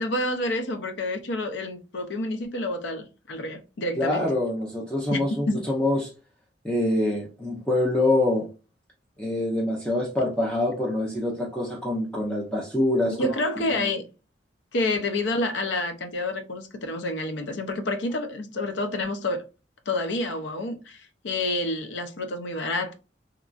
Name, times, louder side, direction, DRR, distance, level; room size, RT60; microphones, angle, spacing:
voice 1, 0.0-4.3 5.1-5.7 13.2-14.1 14.7-19.5 19.9-22.9, left 2 dB, 75° left, 0.5 m, -28 dB
voice 2, 4.0-6.1 6.6-8.5 9.2-13.3 13.7-13.8, left 1 dB, 5° left, 0.5 m, -25 dB
2.9 x 2.3 x 2.4 m
head